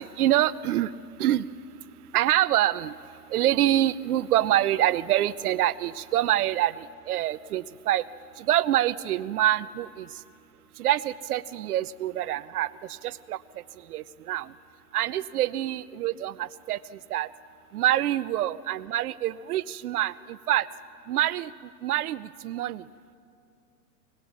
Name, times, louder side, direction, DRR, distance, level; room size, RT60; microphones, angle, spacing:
voice 1, 0.0-8.1 8.3-10.2 10.7-14.5 14.9-17.3 17.7-20.7 21.1-22.9, right 13 dB, 60° right, 18 dB, 0.8 m, -26 dB
24.0 x 21.0 x 7.3 m, 2.4 s
hypercardioid pair, 120°, 49 cm